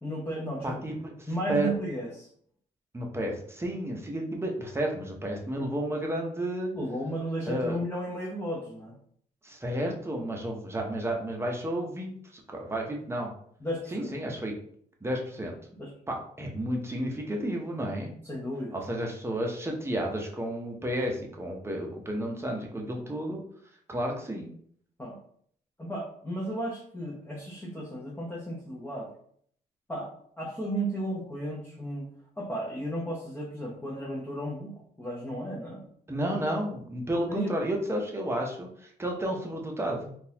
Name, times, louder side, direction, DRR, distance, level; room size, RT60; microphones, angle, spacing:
voice 1, 0.0-0.8 1.3-2.3 6.7-8.9 13.6-14.1 15.8-15.9 18.2-18.8 25.0-25.2 25.8-29.1 29.9-32.1 32.4-35.9 37.3-37.5, right 1 dB, 10° left, -4 dB, 0.8 m, -34 dB
voice 2, 0.6-1.7 2.9-6.7 7.4-7.8 9.4-13.3 13.9-14.5 15.0-15.6 16.1-18.1 18.7-23.4 23.9-24.5 36.1-40.2, right 1 dB, 15° right, 0 dB, 0.8 m, -32 dB
3.8 x 2.5 x 2.9 m, 0.62 s
cardioid pair, 90°, 16 cm